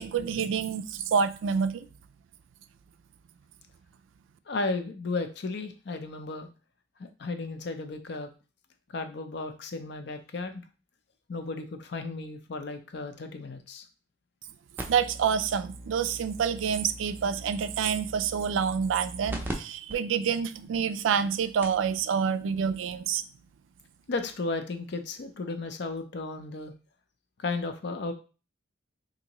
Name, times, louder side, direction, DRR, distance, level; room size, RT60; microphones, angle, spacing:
voice 1, 0.0-1.9 14.9-23.2, right 7 dB, 80° right, 0.3 m, -27 dB
voice 2, 4.5-6.5 7.0-8.3 8.9-10.6 11.3-13.8 24.1-26.7 27.4-28.1, left 3 dB, 60° left, 0.5 m, -34 dB
sound 1, 14.8-19.5 19.9-20.0 20.6-20.7 21.3-21.4 21.6-21.9 23.1-23.2, right 1 dB, 10° right, 0.5 m, -40 dB
3.7 x 2.6 x 2.9 m
head